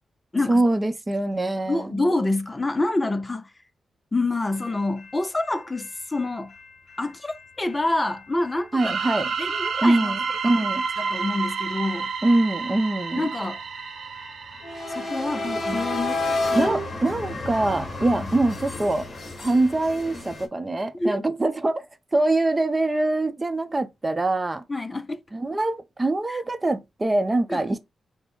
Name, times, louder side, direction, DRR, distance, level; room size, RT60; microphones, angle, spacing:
voice 1, 0.5-2.0 8.7-9.3 9.8-10.9 12.2-13.3 16.5-19.1 19.4-21.9 22.1-24.6 25.3-27.8, right 2 dB, 25° right, 0.7 m, -23 dB
voice 2, 1.7-3.5 4.1-6.5 7.0-8.9 9.4-10.4 11.0-12.1 13.2-13.6 14.9-16.7 18.1-18.3 20.9-21.2 24.7-25.2 26.3-26.4 27.5-27.6, left 2 dB, 25° left, 0.5 m, -27 dB
sound 1, 4.6-20.5, left 2 dB, 40° left, 1.9 m, -34 dB
sound 2, 8.8-15.4, right 5 dB, 70° right, 0.7 m, -30 dB
4.9 x 2.2 x 4.7 m
cardioid pair, 70°, 0 cm